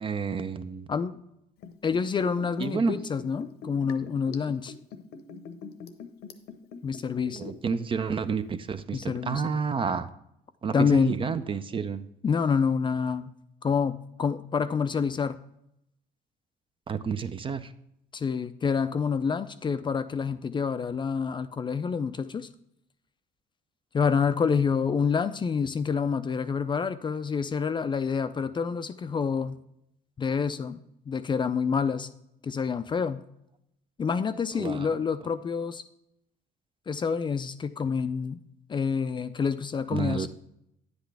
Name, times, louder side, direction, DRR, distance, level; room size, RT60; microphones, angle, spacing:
voice 1, 0.0-0.9 2.6-3.0 7.3-10.1 10.6-12.1 16.9-17.7 34.6-34.9 39.9-40.3, right 5 dB, 30° right, 12 dB, 0.5 m, -30 dB
voice 2, 0.9-1.2 1.8-4.7 6.8-7.4 8.9-9.4 10.7-11.1 12.2-13.3 13.6-15.4 18.1-22.5 23.9-29.6 30.2-30.8 31.1-32.1 32.4-33.3 34.0-35.8 36.9-38.4 38.7-40.3, left 6 dB, 30° left, 12 dB, 0.4 m, -27 dB
Liquid, 1.6-7.8 8.0-8.1, left 5 dB, 75° left, 0.9 m, -43 dB
9.5 x 8.0 x 3.4 m, 0.78 s
cardioid pair, 110°, 17 cm